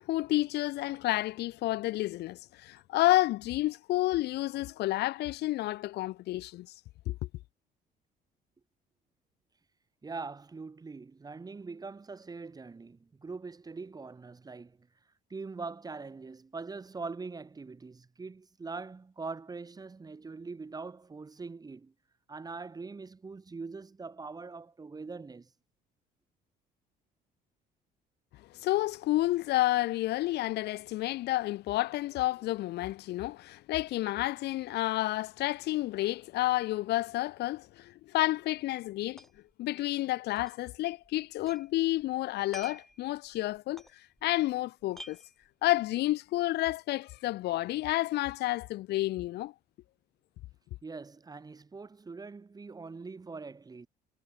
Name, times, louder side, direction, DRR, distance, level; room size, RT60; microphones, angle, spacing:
voice 1, 0.0-6.7 7.1-7.2 28.5-39.2 39.6-43.8 44.2-45.2 45.6-49.5, left 17 dB, 80° left, 1.8 m, -30 dB
voice 2, 10.0-14.9 15.3-21.9 22.3-25.5 50.8-53.9, right 4 dB, 20° right, 2.3 m, -42 dB
sound 1, 38.9-39.5 39.8-39.9 40.4-41.7 42.0-44.5 44.8-45.9, equal, ahead, 7.3 m, -50 dB
cardioid pair, 110°, 17 cm